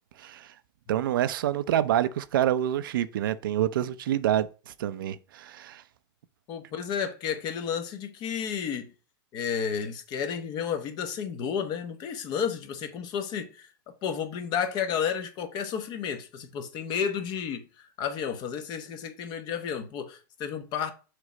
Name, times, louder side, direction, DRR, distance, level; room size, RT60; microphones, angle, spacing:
voice 1, 0.2-0.5 0.9-5.8, right 11 dB, 80° right, 0.6 m, -27 dB
voice 2, 6.5-8.9 9.3-20.9, left 7 dB, 40° left, 1.0 m, -32 dB
6.5 x 3.1 x 5.0 m
supercardioid pair, 130°, 11 cm